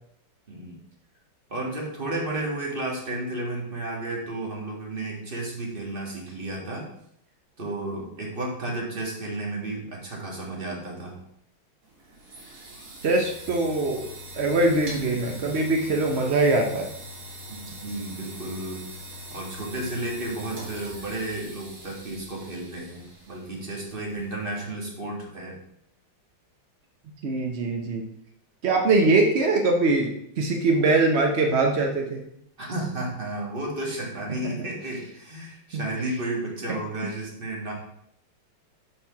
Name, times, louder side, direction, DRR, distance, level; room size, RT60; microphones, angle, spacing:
voice 1, 1.5-6.9 7.6-11.2 17.5-18.8 19.3-25.6 32.6-37.7, right 2 dB, 25° right, -2 dB, 1.7 m, -32 dB
sound 1, 11.8-24.6, equal, 50° right, 2.2 m, -42 dB
voice 2, 13.0-14.1 14.3-16.9 27.2-28.0 28.6-30.1 30.4-32.2 35.7-35.9, right 2 dB, 70° right, 2 dB, 0.6 m, -22 dB
6.2 x 4.6 x 5.7 m, 0.74 s
omnidirectional pair, 2.3 m